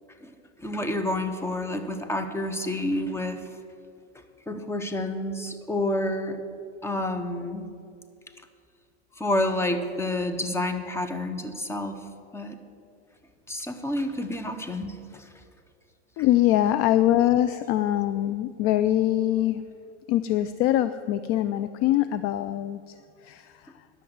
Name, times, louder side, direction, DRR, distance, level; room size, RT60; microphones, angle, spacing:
voice 1, 0.6-3.5 4.1-6.4 6.8-7.7 9.2-12.1 12.3-12.6 13.5-15.3, left 1 dB, 5° left, 7 dB, 0.9 m, -29 dB
voice 2, 16.2-19.6 20.1-23.0 23.2-23.7, left 13 dB, 40° left, 12 dB, 0.4 m, -23 dB
10.5 x 7.0 x 7.9 m, 2.4 s
hypercardioid pair, 110°, 36 cm